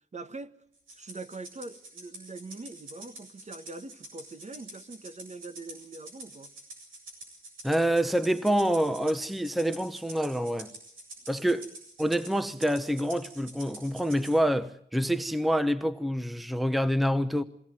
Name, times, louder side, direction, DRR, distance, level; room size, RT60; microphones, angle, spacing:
voice 1, 0.1-0.5 0.9-6.5, right 3 dB, 35° right, 1.4 m, -43 dB
Rattle (instrument), 0.9-14.4, right 2 dB, 90° right, 7.7 m, -47 dB
voice 2, 7.6-10.7 11.3-11.7 12.0-17.4, equal, ahead, 1.0 m, -27 dB
22.0 x 18.5 x 8.9 m
cardioid pair, 85°, 20 cm